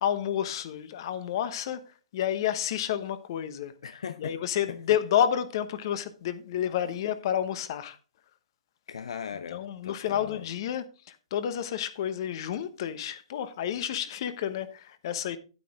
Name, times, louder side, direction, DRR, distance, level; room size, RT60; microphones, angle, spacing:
voice 1, 0.0-3.7 4.2-8.0 9.5-15.4, left 10 dB, 50° left, 1.1 m, -30 dB
voice 2, 3.8-4.4 4.7-4.8 8.9-10.4, left 7 dB, 75° left, 0.6 m, -38 dB
9.2 x 8.7 x 3.6 m
hypercardioid pair, 140°, 3 cm